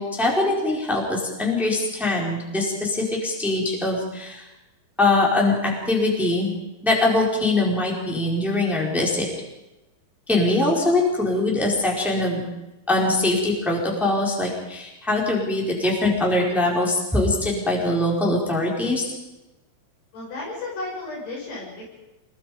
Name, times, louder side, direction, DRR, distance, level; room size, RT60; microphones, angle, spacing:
voice 1, 0.0-4.4 5.0-6.5 6.8-9.3 10.3-12.4 12.9-19.0, left 2 dB, ahead, -2 dB, 4.4 m, -22 dB
voice 2, 20.1-21.9, left 2 dB, 80° left, -3 dB, 8.5 m, -33 dB
27.5 x 21.5 x 5.2 m, 1.0 s
omnidirectional pair, 4.6 m